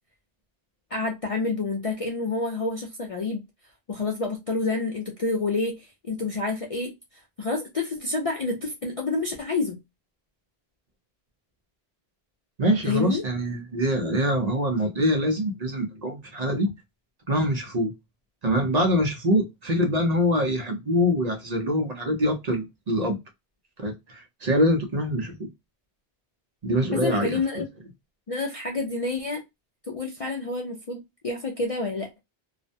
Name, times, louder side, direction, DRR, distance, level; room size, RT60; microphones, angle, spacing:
voice 1, 0.9-3.4 3.9-6.9 7.4-9.8 12.9-13.2 26.9-27.7 28.3-29.4 29.9-32.2, left 3 dB, 50° left, 0.4 m, -28 dB
voice 2, 12.6-16.7 17.3-17.9 18.4-23.2 23.8-25.5 26.6-27.6, equal, 45° right, 0.6 m, -24 dB
2.4 x 2.1 x 2.5 m
omnidirectional pair, 1.1 m